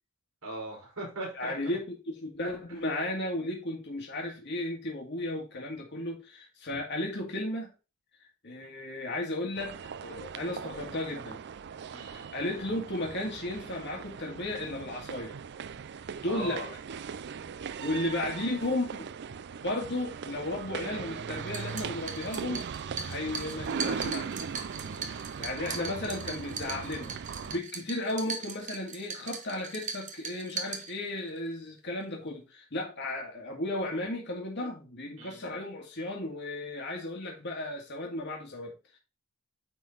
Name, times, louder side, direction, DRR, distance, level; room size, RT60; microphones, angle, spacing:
voice 1, 0.4-1.5 11.9-12.3 16.2-16.7 24.8-25.2 35.2-35.4, right 2 dB, 85° right, -1 dB, 4.1 m, -39 dB
voice 2, 1.3-7.7 8.4-11.4 12.0-15.4 16.2-16.6 17.8-19.1 19.5-24.3 25.4-39.0, left 1 dB, 55° left, 0 dB, 1.8 m, -34 dB
sound 1, 9.6-27.6, right 6 dB, 55° right, 0.4 m, -39 dB
sound 2, 21.4-31.4, right 5 dB, 35° right, 0.9 m, -40 dB
9.2 x 3.9 x 3.9 m, 0.29 s
head